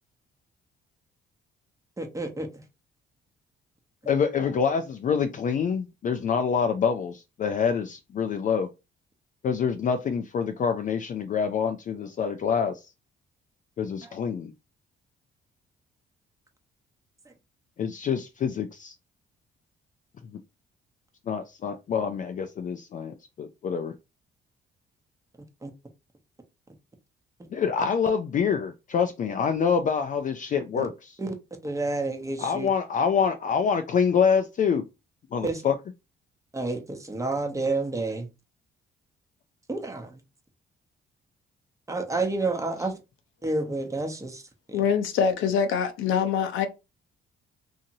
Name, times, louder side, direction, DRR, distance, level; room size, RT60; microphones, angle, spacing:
voice 1, 2.0-2.5 25.6-25.7 30.7-30.8 31.2-31.3 31.6-32.7 35.4-35.6 36.5-38.3 39.7-40.2 41.9-42.9 43.4-44.4 44.7-44.8, right 2 dB, 15° right, 0.7 m, -29 dB
voice 2, 4.1-8.7 9.4-12.8 13.8-14.5 17.8-18.9 21.3-23.9 27.5-31.1 32.4-34.8 35.3-35.8, left 6 dB, 40° left, 0.4 m, -26 dB
voice 3, 44.7-46.7, left 7 dB, 80° left, 0.6 m, -24 dB
2.8 x 2.7 x 2.6 m
cardioid pair, 90°, 20 cm